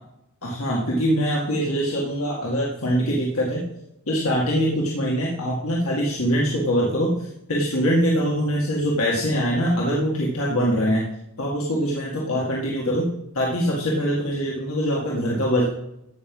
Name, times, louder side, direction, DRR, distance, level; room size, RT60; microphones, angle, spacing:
voice 1, 0.4-3.6 4.1-11.0 11.4-13.1 13.3-15.6, equal, 80° left, -3 dB, 1.9 m, -23 dB
15.0 x 6.0 x 5.4 m, 0.83 s
head